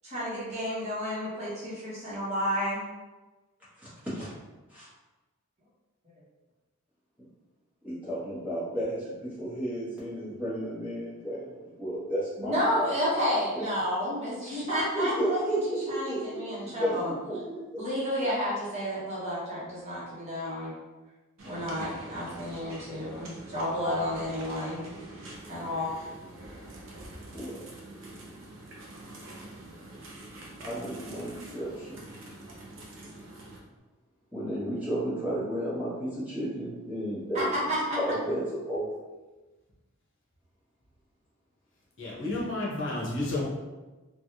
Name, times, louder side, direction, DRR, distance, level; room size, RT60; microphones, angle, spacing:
voice 1, 0.0-2.8 6.0-6.1 12.4-17.1 17.8-20.7 21.4-24.8 25.5-25.9 37.3-38.0, equal, 30° right, -9 dB, 1.0 m, -31 dB
voice 2, 3.8-4.3 4.7-4.8 7.8-12.6 12.9-13.0 13.3-13.7 14.9-17.8 26.5-26.6 27.3-27.6 30.6-32.0 34.3-37.6 38.0-38.4 38.7-38.9, right 1 dB, 5° right, -10 dB, 1.0 m, -33 dB
sound 1, 21.4-33.6, right 1 dB, 60° right, 0.6 m, -45 dB
voice 3, 42.0-43.5, left 2 dB, 55° left, -6 dB, 0.9 m, -31 dB
3.3 x 2.3 x 2.7 m, 1.2 s
head